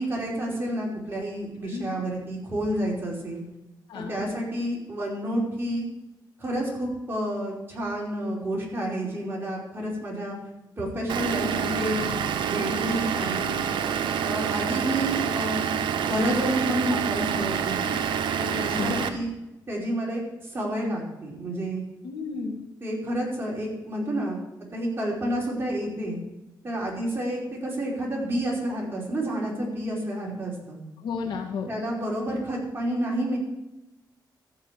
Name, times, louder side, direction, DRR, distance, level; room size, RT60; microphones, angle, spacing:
voice 1, 0.0-3.4 3.9-5.8 6.4-10.4 10.8-12.1 12.4-13.6 14.2-15.7 16.0-17.9 18.4-19.3 19.7-20.2 20.5-21.8 22.8-24.4 24.7-26.2 26.6-30.8 31.7-33.4, right 1 dB, 30° right, -4 dB, 4.9 m, -29 dB
Vehicle / Engine, 11.1-19.1, right 8 dB, 85° right, 0.9 m, -27 dB
voice 2, 18.5-19.1 22.0-22.6 31.0-31.7, left 5 dB, 90° left, 3 dB, 1.9 m, -32 dB
14.5 x 5.7 x 7.5 m, 0.97 s
cardioid pair, 90°, 8 cm